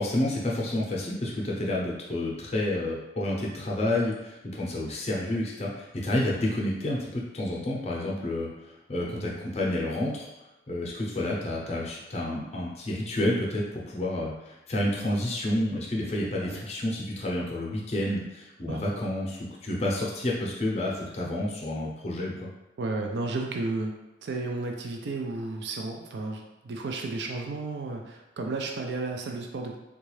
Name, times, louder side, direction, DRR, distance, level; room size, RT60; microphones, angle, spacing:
voice 1, 0.0-10.3 10.7-22.5, left 1 dB, 35° left, -3 dB, 0.6 m, -30 dB
voice 2, 9.0-9.4 16.4-16.6 18.7-18.9 22.8-23.9 24.2-29.8, right 3 dB, 70° right, 3 dB, 0.4 m, -33 dB
3.8 x 2.3 x 3.1 m, 1.0 s
head